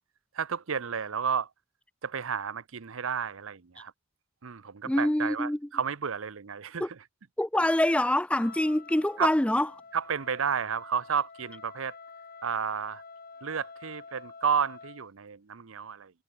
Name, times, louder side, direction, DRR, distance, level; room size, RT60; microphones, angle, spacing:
voice 1, 0.4-1.5 2.0-3.9 4.4-6.8 9.2-9.3 9.9-11.9 12.4-13.0 13.4-16.1, right 6 dB, 75° right, 0.7 m, -31 dB
voice 2, 4.8-5.7 6.8-6.9 7.4-9.7, left 1 dB, 5° left, 0.5 m, -25 dB
Wind instrument woodwind instrument, 8.3-15.1, left 4 dB, 45° left, 4.5 m, -49 dB
head